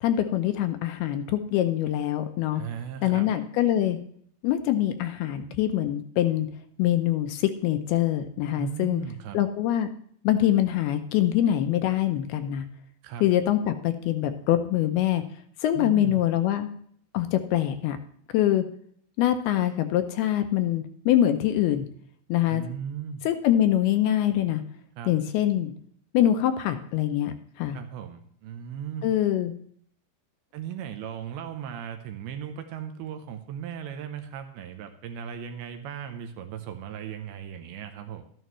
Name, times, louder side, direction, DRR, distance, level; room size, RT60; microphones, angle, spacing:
voice 1, 0.0-2.6 3.0-4.0 4.4-6.5 6.8-9.0 9.3-9.9 10.2-12.7 13.2-15.2 15.6-16.7 17.1-18.0 18.3-18.6 19.2-21.9 22.3-22.6 23.3-24.6 25.1-25.7 26.1-27.8 29.0-29.5, left 12 dB, 80° left, 8 dB, 2.5 m, -24 dB
voice 2, 2.5-3.3 8.5-9.4 13.0-13.3 15.7-16.2 22.5-23.2 25.0-25.1 27.7-29.1 30.5-38.2, right 8 dB, 80° right, 7 dB, 2.4 m, -37 dB
12.5 x 11.0 x 3.1 m, 0.62 s
omnidirectional pair, 4.8 m